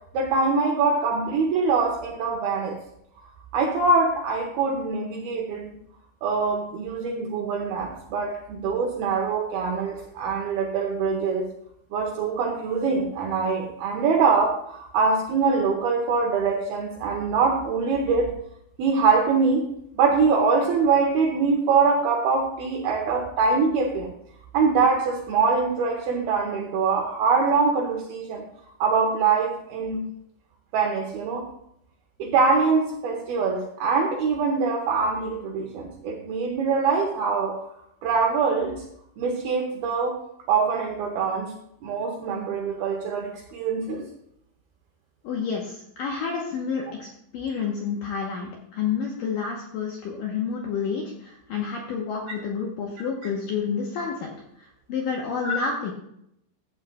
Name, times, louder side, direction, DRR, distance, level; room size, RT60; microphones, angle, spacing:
voice 1, 0.1-2.8 3.5-5.7 6.2-11.5 11.9-18.3 18.8-19.7 20.0-24.1 24.5-28.4 28.8-30.1 30.7-31.4 32.2-37.6 38.0-38.8 39.2-40.2 40.5-41.5 41.8-44.0 52.3-52.4 55.4-55.5, right 4 dB, 75° right, 1 dB, 2.3 m, -23 dB
voice 2, 45.2-47.1 47.3-54.3 54.6-55.9, left 6 dB, 85° left, -1 dB, 1.9 m, -29 dB
14.5 x 8.8 x 2.3 m, 0.75 s
omnidirectional pair, 5.4 m